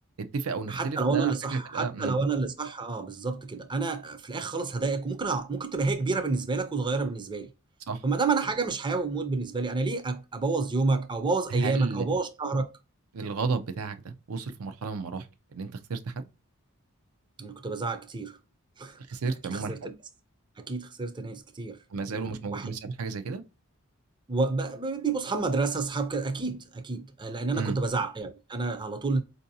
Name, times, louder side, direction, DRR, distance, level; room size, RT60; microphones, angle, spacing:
voice 1, 0.2-2.1 7.9-8.0 11.5-12.0 13.1-15.3 15.5-16.3 19.1-19.7 21.9-23.4 27.5-27.8, right 4 dB, 90° right, 0.5 m, -32 dB
voice 2, 0.7-7.5 8.0-12.7 17.4-18.4 18.8-19.0 19.5-19.9 20.6-21.8 22.1-22.2 22.5-22.7 24.3-29.2, right 3 dB, 20° right, 0.5 m, -29 dB
4.4 x 2.6 x 2.6 m
head